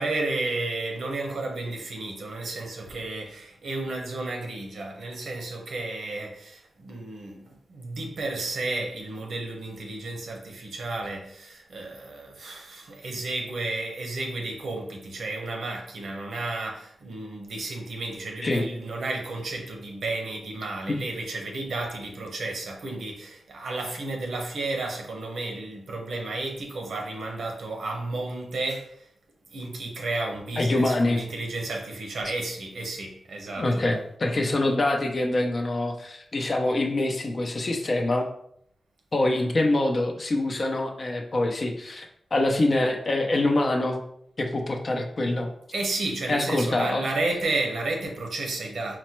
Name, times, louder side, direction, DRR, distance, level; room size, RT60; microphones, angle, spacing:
voice 1, 0.0-29.1 29.5-33.9 45.7-49.0, right 2 dB, 80° right, 0.9 m, -32 dB
voice 2, 30.6-31.2 33.6-38.3 39.1-42.1 42.3-44.0 44.4-45.5 46.3-47.0, left 2 dB, 45° left, 0.7 m, -25 dB
4.1 x 2.1 x 4.4 m
cardioid pair, 70°, 0 cm